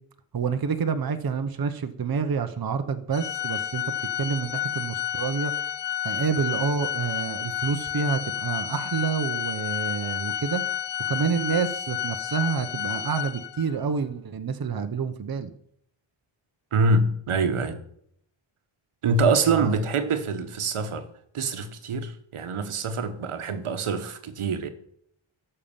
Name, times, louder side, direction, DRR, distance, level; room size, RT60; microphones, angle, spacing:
voice 1, 0.3-3.8 4.2-5.5 6.0-10.6 11.1-15.5 19.5-19.8, right 6 dB, 45° right, 0.9 m, -28 dB
Organ, 3.1-13.8, left 10 dB, 55° left, 0.7 m, -31 dB
voice 2, 16.7-17.8 19.0-21.1 21.3-24.7, right 3 dB, 80° right, 1.2 m, -25 dB
13.0 x 5.6 x 7.1 m
wide cardioid pair, 105°, 50 cm